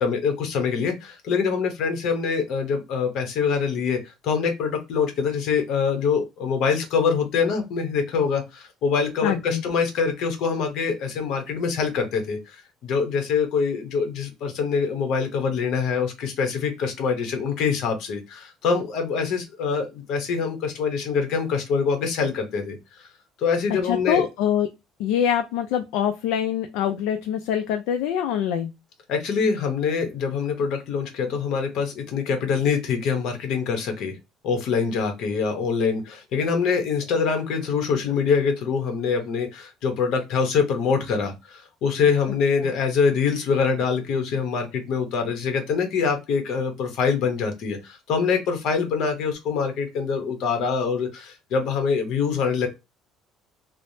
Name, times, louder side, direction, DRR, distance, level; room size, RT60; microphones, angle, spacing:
voice 1, 0.0-22.8 23.4-24.3 29.1-34.2 34.4-52.7, left 5 dB, 60° left, 5 dB, 0.9 m, -24 dB
voice 2, 9.2-9.6 23.8-24.7 25.0-28.7, left 9 dB, 85° left, 6 dB, 0.3 m, -24 dB
3.3 x 2.0 x 2.7 m, 0.24 s
cardioid pair, 150°, 0 cm